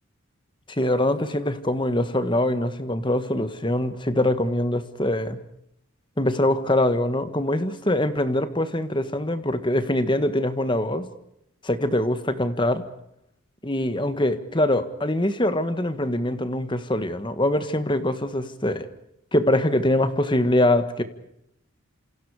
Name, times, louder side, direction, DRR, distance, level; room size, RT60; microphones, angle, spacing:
voice 1, 0.7-5.4 6.2-11.1 11.6-12.8 13.6-18.9 19.3-21.0, left 1 dB, 20° left, 11 dB, 1.5 m, -23 dB
29.0 x 27.5 x 5.0 m, 0.78 s
head